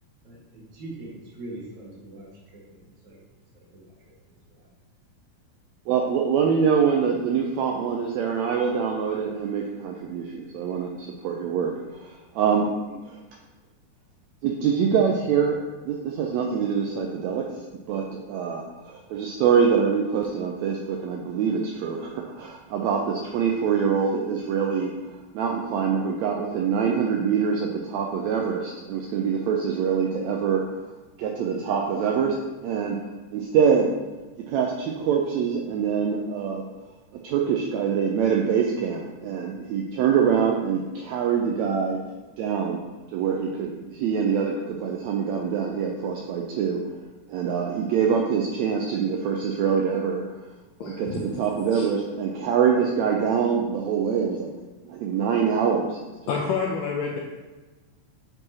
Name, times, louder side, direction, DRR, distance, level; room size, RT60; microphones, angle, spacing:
voice 1, 0.2-2.3 2.7-3.2 3.5-4.1 12.6-13.0 14.9-15.1, right 2 dB, 65° right, -4 dB, 2.7 m, -42 dB
voice 2, 5.9-11.7 12.0-12.7 14.4-15.6 15.8-17.5 17.9-24.9 25.3-30.6 31.2-32.3 32.6-33.0 33.3-33.9 34.5-36.6 37.2-42.0 42.4-42.8 43.1-46.8 47.3-50.3 50.8-54.5 54.9-56.1, right 7 dB, 90° right, 1 dB, 1.5 m, -24 dB
voice 3, 50.8-51.4 51.7-51.8 56.3-57.2, left 5 dB, 80° left, -2 dB, 1.6 m, -28 dB
7.8 x 4.6 x 2.8 m, 1.2 s
omnidirectional pair, 3.7 m